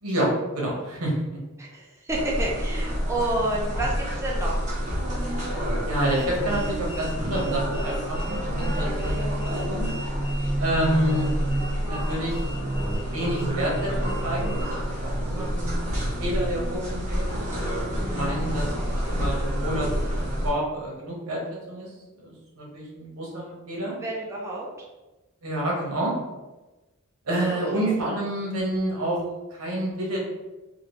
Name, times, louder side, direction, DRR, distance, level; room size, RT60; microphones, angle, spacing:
voice 1, 0.0-1.1 5.9-9.9 10.6-11.3 11.8-12.4 13.1-14.6 15.0-15.9 16.2-17.5 17.7-18.7 19.0-20.1 20.4-21.4 21.7-21.9 22.2-23.9 25.4-26.1 27.3-29.2 29.5-30.2, right 1 dB, 80° right, -3 dB, 1.0 m, -28 dB
voice 2, 1.6-4.7 18.0-18.4 24.0-24.7 27.5-27.9, right 1 dB, 15° right, -4 dB, 0.4 m, -30 dB
sound 1, 2.1-20.5, equal, 35° right, 1.1 m, -28 dB
2.8 x 2.6 x 3.0 m, 1.1 s
head